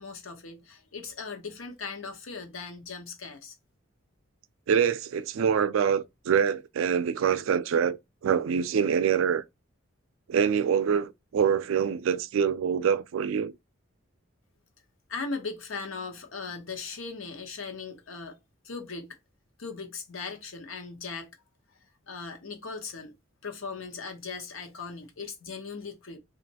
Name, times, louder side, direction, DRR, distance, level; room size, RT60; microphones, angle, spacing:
voice 1, 0.0-3.5 15.1-18.4 18.6-19.2 19.6-21.4 22.1-23.1 23.4-26.2, left 4 dB, 85° left, 0.8 m, -38 dB
voice 2, 4.7-8.0 8.2-9.4 10.3-13.5, right 7 dB, 75° right, 0.3 m, -25 dB
3.0 x 2.4 x 2.7 m
head